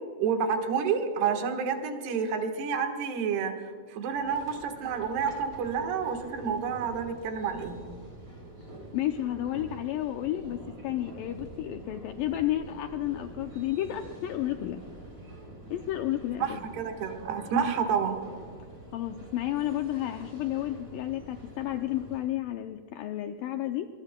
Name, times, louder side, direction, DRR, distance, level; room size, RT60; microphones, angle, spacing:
voice 1, 0.2-7.8 16.4-18.2, right 6 dB, 85° right, 5 dB, 3.5 m, -29 dB
sound 1, 4.1-22.2, right 1 dB, 20° right, 4.4 m, -46 dB
voice 2, 8.9-14.8 15.7-16.6 18.9-23.9, left 13 dB, 90° left, 6 dB, 2.0 m, -31 dB
23.5 x 20.5 x 2.2 m, 2.2 s
omnidirectional pair, 4.6 m